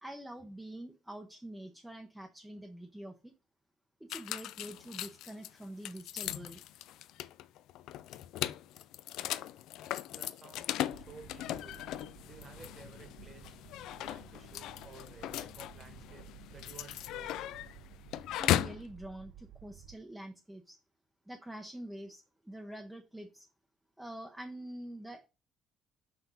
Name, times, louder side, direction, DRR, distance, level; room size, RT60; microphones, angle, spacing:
voice 1, 0.0-3.3 4.0-6.6 18.3-20.8 21.3-23.5 24.0-25.3, right 1 dB, 5° right, 0.7 m, -46 dB
sound 1, 4.1-18.8, left 13 dB, 75° left, 0.4 m, -38 dB
voice 2, 10.1-11.9 12.2-13.6 13.9-17.6, right 4 dB, 25° right, 1.2 m, -55 dB
sound 2, 10.9-20.0, right 10 dB, 50° right, 0.7 m, -55 dB
5.9 x 4.3 x 5.3 m
cardioid pair, 170°, 0 cm